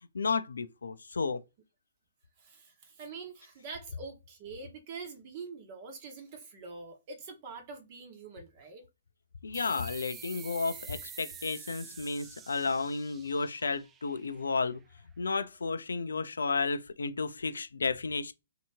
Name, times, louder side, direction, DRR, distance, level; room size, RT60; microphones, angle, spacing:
voice 1, 0.1-1.4 9.4-14.8 15.2-18.3, left 4 dB, 80° left, 0.5 m, -32 dB
voice 2, 2.4-8.9, right 4 dB, 40° right, 1.0 m, -45 dB
sound 1, 9.5-14.7, right 8 dB, 20° right, 0.4 m, -48 dB
3.4 x 2.8 x 2.7 m
hypercardioid pair, 130°, 0 cm